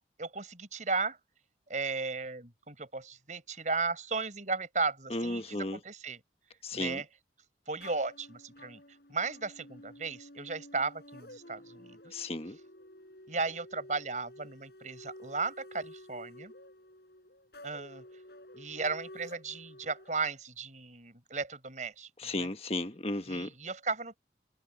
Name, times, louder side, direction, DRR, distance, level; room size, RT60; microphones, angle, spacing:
voice 1, 0.2-1.2 1.7-6.2 6.7-7.1 7.7-12.2 13.3-16.5 17.6-18.0 18.5-22.5 23.3-24.2, right 4 dB, 45° right, 5.1 m, -35 dB
voice 2, 5.1-5.8 6.6-7.0 12.1-12.6 22.2-23.5, left 2 dB, 35° left, 1.4 m, -34 dB
sound 1, 7.8-20.1, left 1 dB, 60° left, 6.7 m, -51 dB
head